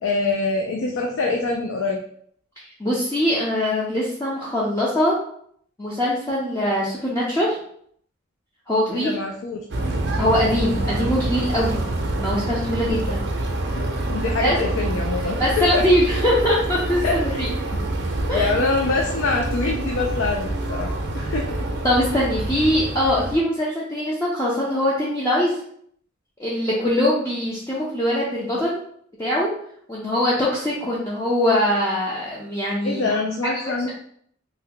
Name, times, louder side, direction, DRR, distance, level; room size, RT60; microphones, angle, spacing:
voice 1, 0.0-2.0 8.9-9.6 12.9-13.1 13.8-15.9 17.0-17.4 17.7-17.8 18.3-21.7 32.8-33.9, left 3 dB, 70° left, 2 dB, 0.4 m, -25 dB
voice 2, 2.6-5.1 5.8-7.6 8.7-9.2 10.2-11.8 12.2-13.2 14.4-14.6 15.4-17.5 18.3-18.5 21.8-25.6 26.4-28.8 29.2-29.5 29.9-33.0 33.5-33.9, left 1 dB, 15° left, -7 dB, 0.5 m, -22 dB
sound 1, 9.7-23.4, right 1 dB, 60° right, 0.5 m, -26 dB
2.7 x 2.2 x 3.7 m, 0.64 s
head